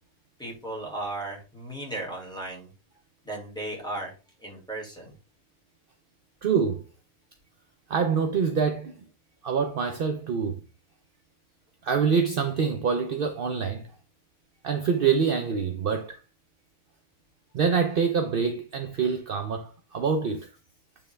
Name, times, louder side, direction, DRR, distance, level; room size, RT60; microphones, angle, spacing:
voice 1, 0.4-2.7 3.2-4.1 4.4-5.2, right 2 dB, 5° left, 2.4 m, -35 dB
voice 2, 6.4-6.8 7.9-8.9 9.4-10.6 11.8-13.8 14.6-16.2 17.5-20.5, right 6 dB, 55° right, 0.6 m, -25 dB
8.8 x 3.6 x 3.3 m
omnidirectional pair, 1.6 m